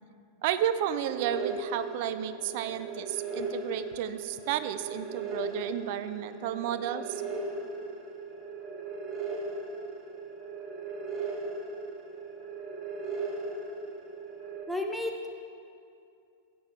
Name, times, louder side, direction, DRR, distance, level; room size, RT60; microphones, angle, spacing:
voice 1, 0.4-7.2, right 10 dB, 50° right, 12 dB, 0.5 m, -32 dB
sound 1, 1.1-14.6, right 3 dB, 30° right, 1.2 m, -38 dB
voice 2, 14.7-15.3, left 1 dB, ahead, 3 dB, 0.7 m, -32 dB
14.5 x 8.5 x 3.3 m, 2.5 s
figure-of-eight pair, 90°, 0 cm